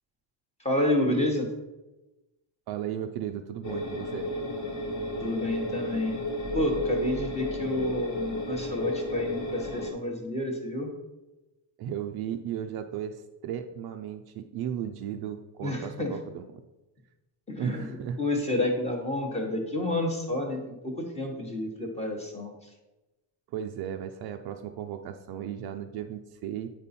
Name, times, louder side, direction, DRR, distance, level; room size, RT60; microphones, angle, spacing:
voice 1, 0.6-1.5 5.2-6.1 6.5-10.9 15.6-16.1 17.5-22.5, left 1 dB, 15° left, 2 dB, 1.0 m, -29 dB
voice 2, 2.7-4.3 11.8-16.5 17.6-18.2 23.5-26.7, right 9 dB, 50° right, 6 dB, 0.5 m, -35 dB
sound 1, 3.6-9.9, left 1 dB, 35° left, 1.3 m, -32 dB
8.8 x 5.3 x 4.2 m, 1.0 s
cardioid pair, 180°, 49 cm